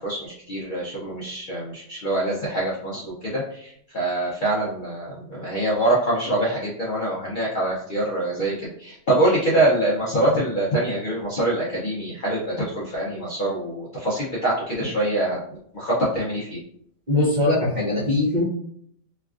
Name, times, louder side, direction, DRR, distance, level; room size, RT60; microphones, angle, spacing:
voice 1, 0.0-15.4 15.7-16.6, right 1 dB, 50° left, -7 dB, 0.6 m, -24 dB
voice 2, 17.1-18.4, left 2 dB, 40° right, -7 dB, 0.7 m, -21 dB
3.3 x 2.3 x 2.4 m, 0.67 s
omnidirectional pair, 1.5 m